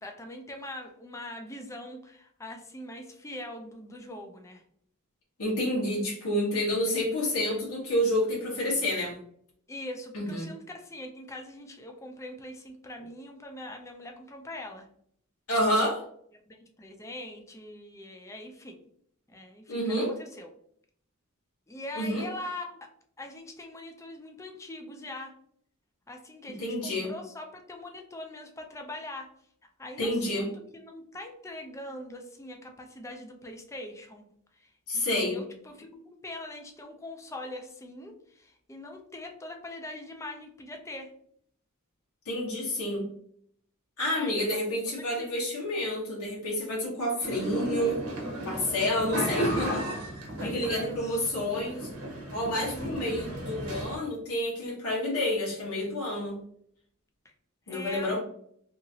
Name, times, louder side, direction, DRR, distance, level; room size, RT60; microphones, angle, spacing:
voice 1, 0.0-4.6 9.7-14.9 16.5-18.8 19.3-20.5 21.7-22.9 23.2-25.3 26.1-29.3 29.8-34.3 34.6-41.1 44.1-45.3 50.3-51.2 52.6-53.3 57.2-57.3 57.7-58.2, left 1 dB, 15° left, 3 dB, 0.4 m, -42 dB
voice 2, 5.4-9.2 10.1-10.5 15.5-16.0 19.7-20.1 21.9-22.3 26.6-27.1 30.0-30.5 34.9-35.4 42.2-43.0 44.0-48.0 48.4-49.9 50.4-51.9 52.3-56.4 57.7-58.2, left 1 dB, 90° left, -4 dB, 1.1 m, -29 dB
sound 1, 47.2-54.0, equal, 80° right, 0.8 m, -35 dB
2.9 x 2.5 x 2.7 m, 0.65 s
head